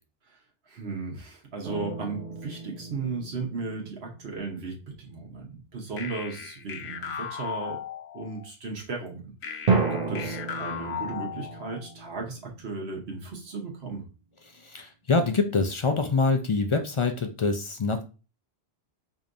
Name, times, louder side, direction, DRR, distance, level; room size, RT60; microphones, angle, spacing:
voice 1, 0.7-7.8 8.1-14.0, right 4 dB, 75° right, 0 dB, 1.2 m, -36 dB
sound 1, 1.6-4.8 9.7-13.3, right 4 dB, 50° right, 0.7 m, -32 dB
sound 2, 6.0-8.5 9.4-11.9, left 7 dB, 85° left, 0.8 m, -37 dB
voice 2, 14.6-18.0, left 4 dB, 45° left, 5 dB, 0.4 m, -25 dB
5.0 x 2.8 x 2.5 m, 0.32 s
omnidirectional pair, 1.1 m